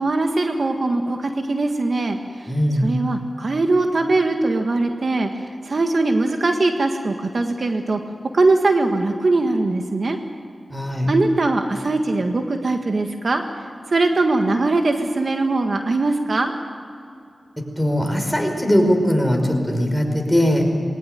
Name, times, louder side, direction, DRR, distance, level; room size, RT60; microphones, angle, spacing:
voice 1, 0.0-2.5 2.8-5.3 5.6-8.0 8.3-10.2 11.1-13.4 13.9-16.5, right 2 dB, 65° right, 5 dB, 1.7 m, -21 dB
voice 2, 2.5-2.9 10.7-11.1 17.6-20.7, equal, ahead, 2 dB, 5.2 m, -20 dB
21.0 x 18.5 x 9.3 m, 2.5 s
cardioid pair, 45°, 0 cm